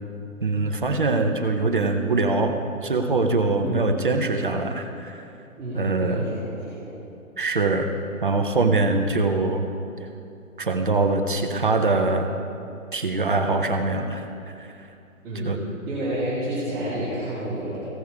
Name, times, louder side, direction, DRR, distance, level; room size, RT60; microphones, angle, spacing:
voice 1, 0.4-5.2 5.7-6.2 7.4-7.9 8.2-9.6 10.6-12.3 12.9-14.9 15.4-15.6, right 3 dB, 35° right, 5 dB, 0.7 m, -23 dB
voice 2, 3.6-4.4 5.6-6.9 15.2-15.6 15.9-17.9, right 1 dB, 10° right, -13 dB, 2.2 m, -30 dB
15.5 x 6.8 x 4.6 m, 2.6 s
hypercardioid pair, 175°, 43 cm